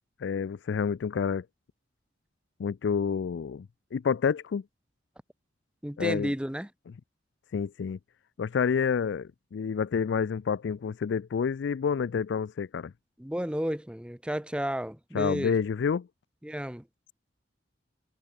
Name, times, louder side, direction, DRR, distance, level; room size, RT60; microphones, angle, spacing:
voice 1, 0.2-1.5 2.6-4.6 6.0-6.3 7.5-8.0 8.4-12.9 15.1-16.1, left 6 dB, 70° left, 0.4 m, -29 dB
voice 2, 5.8-6.7 13.2-15.6 16.4-16.9, equal, 5° right, 0.9 m, -32 dB
head